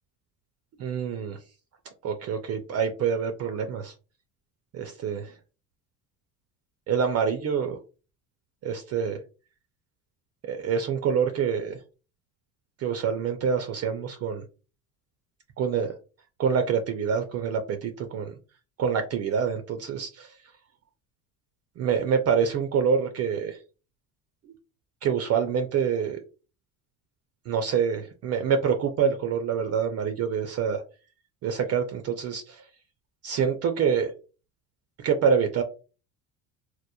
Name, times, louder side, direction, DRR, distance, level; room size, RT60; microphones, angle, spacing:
voice 1, 0.8-1.4 2.0-3.9 4.7-5.3 6.9-7.8 8.6-9.2 10.5-11.8 12.8-14.4 15.6-15.9 16.4-18.3 18.8-20.3 21.8-23.6 25.0-26.2 27.5-30.8 31.4-32.6 33.2-34.1 35.0-35.6, right 6 dB, 40° right, 6 dB, 0.4 m, -26 dB
2.9 x 2.1 x 2.2 m, 0.33 s
supercardioid pair, 90°, 40 cm